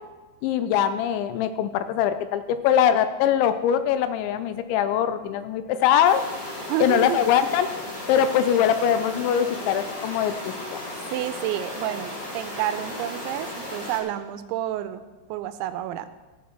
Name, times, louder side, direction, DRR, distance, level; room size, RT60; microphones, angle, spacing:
voice 1, 0.4-6.2 6.8-7.7 8.1-10.8, left 9 dB, 90° left, 11 dB, 3.0 m, -22 dB
sound 1, 6.0-14.0, left 1 dB, 30° left, 3.0 m, -35 dB
voice 2, 6.7-7.2 11.1-15.0 15.3-16.1, right 12 dB, 85° right, 11 dB, 2.9 m, -29 dB
15.0 x 7.3 x 6.0 m, 1.2 s
omnidirectional pair, 5.3 m